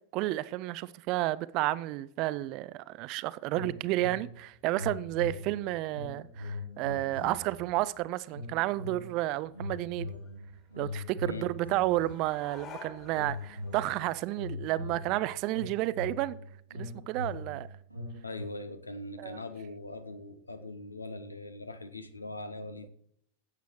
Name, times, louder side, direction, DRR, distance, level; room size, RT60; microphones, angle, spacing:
voice 1, 0.1-10.1 10.8-16.4 16.7-17.7 19.2-19.4, right 17 dB, 40° right, 0.4 m, -31 dB
sound 1, 3.5-4.4 4.7-7.8 8.3-9.2 9.5-12.6 13.1-18.4, left 2 dB, 90° right, 3.1 m, -41 dB
sound 2, 4.3-14.0, left 6 dB, 35° left, 2.4 m, -55 dB
voice 2, 18.2-22.9, left 2 dB, 80° left, 0.8 m, -41 dB
15.5 x 8.2 x 3.0 m
figure-of-eight pair, 90°, 0 cm